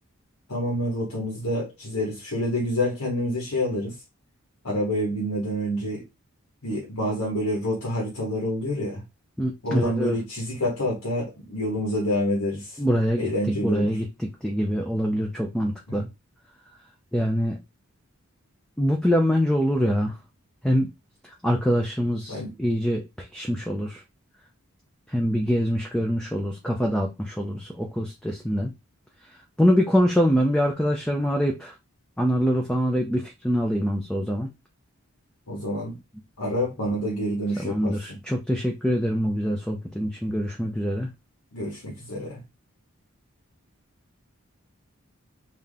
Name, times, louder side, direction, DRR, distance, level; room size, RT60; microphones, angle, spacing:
voice 1, 0.5-4.0 4.6-6.0 6.6-9.0 9.6-12.8 13.2-14.0 15.9-16.0 22.3-22.5 35.5-36.0 36.4-38.0 41.5-42.4, equal, 90° left, 1.3 m, -27 dB
voice 2, 9.4-10.2 12.8-13.3 13.6-16.1 17.1-17.6 18.8-20.2 20.6-20.9 21.4-24.0 25.1-28.7 29.6-31.7 32.2-34.5 37.6-41.1, equal, 5° left, 0.5 m, -24 dB
3.7 x 2.8 x 3.6 m
head